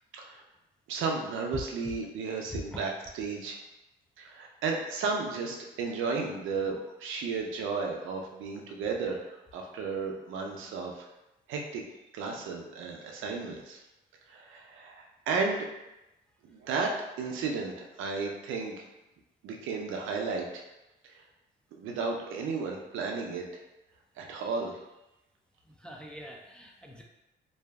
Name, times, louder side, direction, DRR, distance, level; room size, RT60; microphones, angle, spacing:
voice 1, 0.9-3.6 4.2-9.2 9.5-10.9 11.5-11.8 12.1-13.8 14.3-15.7 16.4-17.7 18.0-18.9 19.4-20.6 21.7-23.5 24.2-24.8, right 4 dB, 80° right, 1 dB, 0.5 m, -33 dB
voice 2, 25.7-27.0, left 1 dB, 5° left, -1 dB, 0.3 m, -43 dB
2.6 x 2.3 x 2.2 m, 0.95 s
cardioid pair, 90°, 20 cm